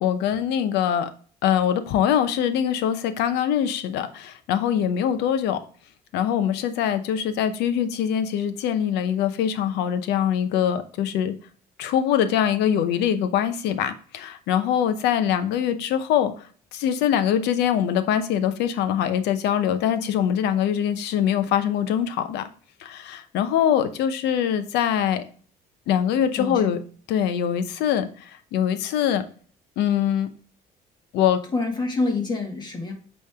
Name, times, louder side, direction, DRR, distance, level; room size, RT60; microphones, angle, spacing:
voice 1, 0.0-1.1 1.4-5.6 6.1-11.3 11.8-16.3 16.7-22.4 22.8-25.2 25.9-26.8 27.1-28.1 28.5-29.2 29.8-30.3 31.1-31.4, left 9 dB, 85° left, 0.8 m, -23 dB
voice 2, 26.4-26.7 31.5-32.9, left 3 dB, 25° left, 2.0 m, -26 dB
8.5 x 3.3 x 3.5 m
cardioid pair, 110°, 17 cm